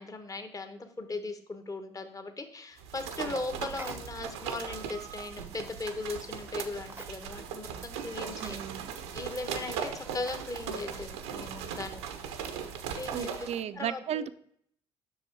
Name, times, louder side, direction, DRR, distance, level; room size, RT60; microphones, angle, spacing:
voice 1, 0.0-8.6 9.1-12.0 12.9-13.5 13.7-14.3, left 3 dB, 25° left, 7 dB, 1.1 m, -38 dB
sound 1, 2.8-13.6, right 7 dB, 80° right, 0.8 m, -39 dB
sound 2, 3.7-4.3 5.7-5.9 6.8-7.4 7.8-7.9 8.2-8.6 10.3-10.4 11.7-12.0, right 2 dB, 15° right, 0.8 m, -47 dB
voice 2, 8.4-8.9 13.1-14.3, right 10 dB, 55° right, 13 dB, 0.6 m, -35 dB
7.8 x 6.1 x 4.7 m, 0.66 s
hypercardioid pair, 50°, 13 cm